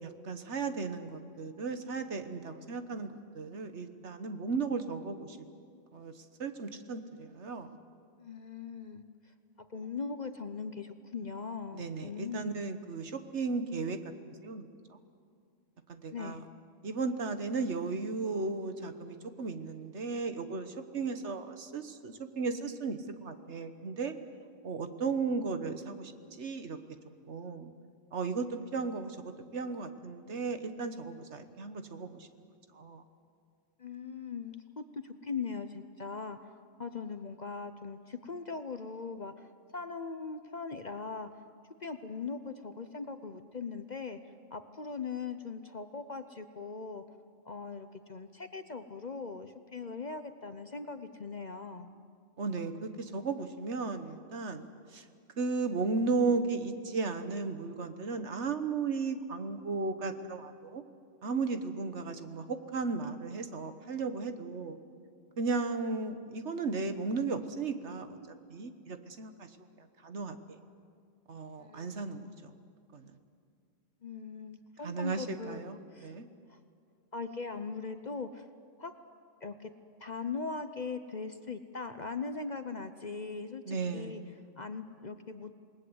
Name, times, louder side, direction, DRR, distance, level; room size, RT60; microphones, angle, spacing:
voice 1, 0.0-5.4 5.9-6.1 6.4-7.7 11.7-14.0 14.4-15.0 15.9-16.4 16.8-24.1 24.6-26.1 26.4-26.8 27.3-27.7 28.1-32.3 32.7-33.0 52.4-54.7 54.9-55.0 55.4-60.8 61.2-64.8 65.4-68.2 68.5-69.5 69.8-70.6 71.3-72.5 72.9-73.1 74.8-76.3 83.7-84.1, right 4 dB, 60° right, 9 dB, 1.5 m, -35 dB
voice 2, 8.2-12.6 16.1-16.4 33.8-36.5 36.8-41.4 41.8-47.0 47.4-51.9 71.6-72.3 74.0-76.2 76.5-76.6 77.1-78.5 78.8-78.9 79.4-79.7 80.0-84.2 84.6-85.5, left 4 dB, 40° left, 9 dB, 0.8 m, -40 dB
27.5 x 20.0 x 8.0 m, 2.2 s
omnidirectional pair, 1.3 m